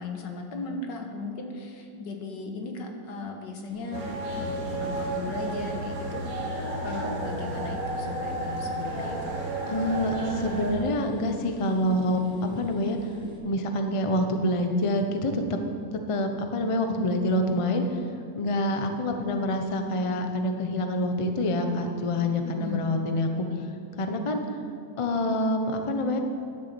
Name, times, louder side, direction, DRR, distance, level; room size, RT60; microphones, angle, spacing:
voice 1, 0.0-4.1 4.3-6.2 6.8-9.4 22.4-22.9, left 3 dB, 75° left, 3 dB, 1.8 m, -37 dB
sound 1, 3.7-13.4, equal, 5° left, 1.5 m, -46 dB
sound 2, 3.9-10.7, right 1 dB, 55° right, 2.1 m, -32 dB
voice 2, 9.7-13.0 13.4-15.4 16.1-18.0 18.3-23.5 24.0-24.4 25.0-26.2, left 1 dB, 40° left, 5 dB, 0.4 m, -26 dB
11.0 x 7.1 x 6.9 m, 2.6 s
omnidirectional pair, 1.9 m